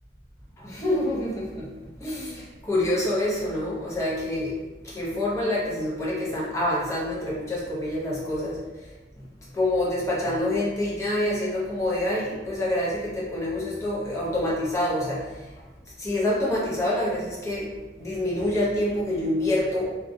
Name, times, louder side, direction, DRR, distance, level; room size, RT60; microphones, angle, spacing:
voice 1, 0.6-9.3 9.5-15.7 16.0-20.0, left 1 dB, 15° left, -6 dB, 0.6 m, -27 dB
2.4 x 2.1 x 2.6 m, 1.2 s
head